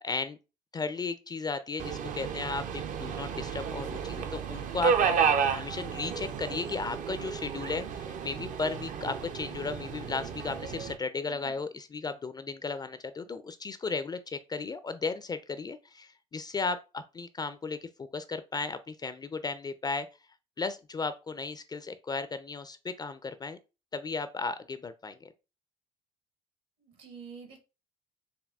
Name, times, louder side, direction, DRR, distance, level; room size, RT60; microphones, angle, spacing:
voice 1, 0.0-0.4 0.7-5.0 5.5-20.1 20.6-23.6 23.9-25.3, left 4 dB, 20° left, 0.4 m, -35 dB
Subway metro underground, 1.8-11.0, right 6 dB, 45° right, 0.5 m, -32 dB
voice 2, 11.2-11.6 26.8-27.6, right 6 dB, 65° right, 1.3 m, -48 dB
5.2 x 2.3 x 2.3 m
hypercardioid pair, 55°, 18 cm